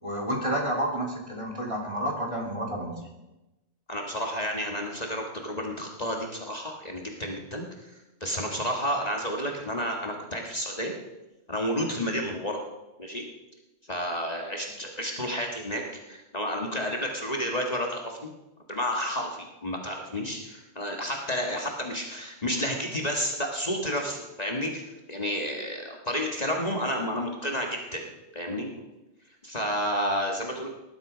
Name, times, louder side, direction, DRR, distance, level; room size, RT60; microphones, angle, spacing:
voice 1, 0.0-3.0 27.1-27.2, right 1 dB, 25° right, -1 dB, 2.9 m, -30 dB
voice 2, 3.9-7.9 8.2-10.9 11.5-12.6 13.0-13.3 13.9-15.8 16.1-18.2 18.7-28.0 28.3-28.7 29.4-30.7, equal, 35° left, 1 dB, 1.9 m, -31 dB
19.5 x 11.5 x 5.1 m, 1.0 s
omnidirectional pair, 1.2 m